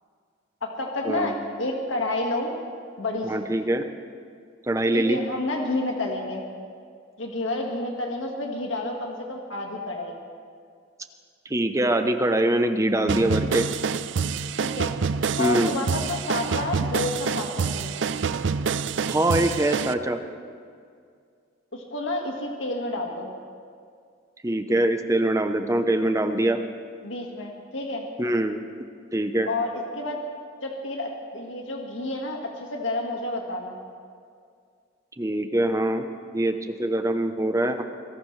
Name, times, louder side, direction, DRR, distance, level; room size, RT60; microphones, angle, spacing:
voice 1, 0.6-2.5 3.0-3.5 4.9-6.4 7.2-10.2 14.6-14.9 15.4-17.9 21.7-23.3 27.0-28.1 29.5-30.3 30.6-33.8, left 2 dB, 90° left, 1 dB, 1.8 m, -30 dB
voice 2, 3.3-3.9 4.7-5.2 11.5-13.7 15.4-15.8 19.1-20.2 24.4-26.6 28.2-28.6 29.1-29.5 35.2-36.0 36.3-37.8, right 1 dB, 15° right, 7 dB, 0.8 m, -23 dB
sound 1, 13.1-19.9, right 5 dB, 70° right, 0.5 m, -27 dB
25.0 x 17.5 x 3.3 m, 2.2 s
head